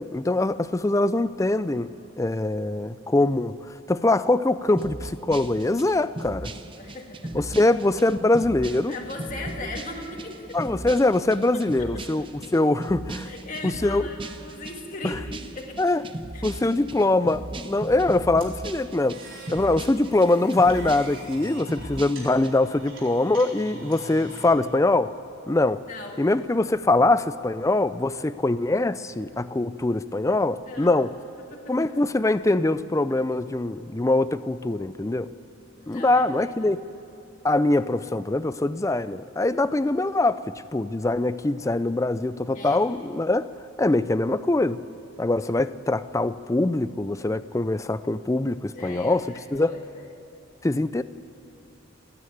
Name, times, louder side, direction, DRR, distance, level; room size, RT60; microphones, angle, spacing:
voice 1, 0.0-1.9 2.2-6.5 7.3-8.9 10.5-12.3 12.5-13.3 13.6-14.0 15.0-15.1 15.8-16.0 16.4-19.2 19.5-25.1 25.5-25.8 26.2-31.1 31.7-35.3 35.9-36.8 37.4-43.5 43.8-44.8 45.2-49.3 49.5-49.7 50.6-51.0, left 2 dB, 15° left, 14 dB, 0.4 m, -23 dB
sound 1, 4.8-22.5, right 1 dB, 25° right, 0.7 m, -38 dB
voice 2, 6.8-7.4 8.9-10.6 11.5-11.9 13.2-15.8 16.3-16.4 17.0-17.1 19.5-19.6 25.9-26.2 30.7-31.0 31.5-31.7 35.8-36.7 42.5-42.8 43.9-44.0 48.7-50.1, left 2 dB, 35° left, 0 dB, 2.0 m, -39 dB
sound 2, 18.4-24.5, right 2 dB, 65° right, 4.2 m, -44 dB
29.5 x 9.8 x 9.4 m, 2.8 s
head